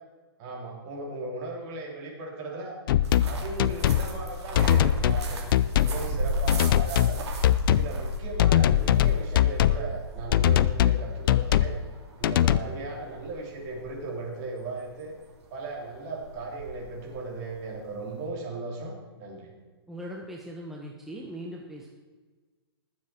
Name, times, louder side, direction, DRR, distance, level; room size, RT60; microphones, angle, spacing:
voice 1, 0.4-2.8 3.2-5.4 5.8-7.2 7.7-11.8 12.2-15.1 15.5-19.5, right 3 dB, 40° right, -1 dB, 3.5 m, -37 dB
sound 1, 2.9-3.3 3.6-4.1 4.6-5.2 5.5-6.0 6.5-7.2 7.4-7.9 8.4-9.8 10.3-11.0 11.3-11.7 12.2-12.6, left 11 dB, 55° left, 0.5 m, -21 dB
sound 2, 3.0-18.3, right 1 dB, 80° right, 3.0 m, -35 dB
voice 2, 19.9-21.9, equal, ahead, -1 dB, 1.0 m, -40 dB
19.5 x 7.4 x 4.5 m, 1.4 s
hypercardioid pair, 145°, 14 cm